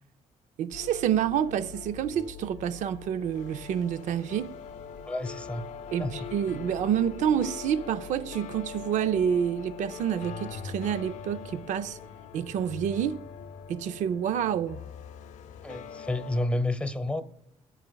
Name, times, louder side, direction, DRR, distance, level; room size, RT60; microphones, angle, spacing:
voice 1, 0.6-4.5 5.9-12.0 12.3-13.2 13.7-14.8, right 9 dB, 75° right, 0.5 m, -28 dB
sound 1, 0.7-16.5, left 7 dB, 75° left, 0.6 m, -42 dB
voice 2, 5.1-5.6 6.0-6.1 15.6-17.2, left 1 dB, 10° left, 0.9 m, -30 dB
23.5 x 8.9 x 2.3 m
cardioid pair, 90°, 13 cm